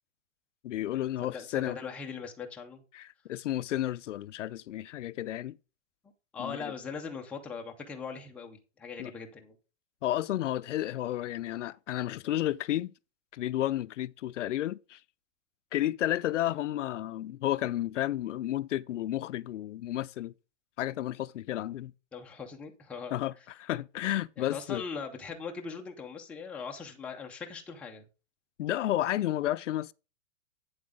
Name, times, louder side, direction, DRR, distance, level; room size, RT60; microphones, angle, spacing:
voice 1, 0.6-1.8 2.9-5.6 6.4-6.7 9.0-9.1 10.0-12.9 13.3-15.0 15.7-20.3 20.8-21.9 23.1-24.8 28.6-29.9, left 13 dB, 80° left, 0.6 m, -32 dB
voice 2, 1.3-2.8 6.3-9.6 22.1-23.1 24.4-28.1, left 5 dB, 5° left, 0.5 m, -40 dB
8.7 x 7.7 x 3.6 m
hypercardioid pair, 155°, 36 cm